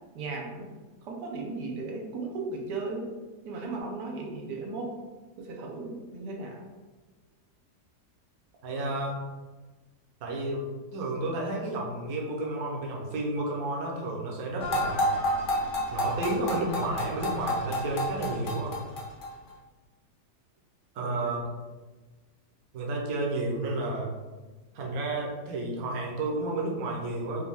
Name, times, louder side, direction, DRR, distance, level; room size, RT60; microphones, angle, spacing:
voice 1, 0.1-0.7 1.0-3.1 3.4-4.9 5.4-6.6 21.0-21.4, right 3 dB, 85° right, 0 dB, 1.3 m, -36 dB
voice 2, 8.6-9.3 10.2-10.6 10.9-15.2 15.9-18.8 20.9-21.5 22.7-24.1 24.7-27.5, right 2 dB, 65° right, -2 dB, 1.2 m, -31 dB
sound 1, 14.6-19.5, equal, 50° left, 0.6 m, -30 dB
5.0 x 2.3 x 3.4 m, 1.3 s
omnidirectional pair, 1.7 m